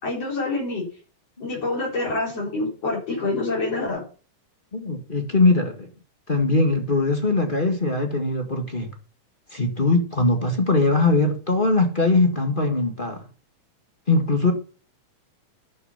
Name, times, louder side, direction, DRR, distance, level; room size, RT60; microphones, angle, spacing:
voice 1, 0.0-0.8 1.4-4.0, left 2 dB, 50° left, 5.3 m, -26 dB
voice 2, 4.7-5.9 6.3-8.9 9.5-13.2 14.1-14.5, left 2 dB, 25° left, 1.3 m, -21 dB
12.0 x 6.6 x 5.7 m
omnidirectional pair, 3.7 m